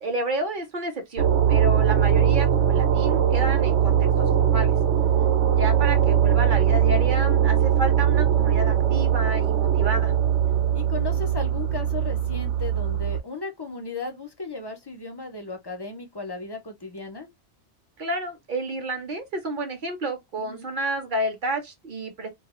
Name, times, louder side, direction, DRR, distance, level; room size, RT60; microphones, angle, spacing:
voice 1, 0.0-4.7 5.5-10.1 18.0-22.3, right 1 dB, 50° right, 0.8 m, -30 dB
sound 1, 1.2-13.2, right 9 dB, 75° right, 0.9 m, -21 dB
voice 2, 5.0-5.3 10.7-17.3 20.4-20.7, left 3 dB, 40° left, 0.3 m, -35 dB
2.4 x 2.3 x 2.9 m
omnidirectional pair, 1.2 m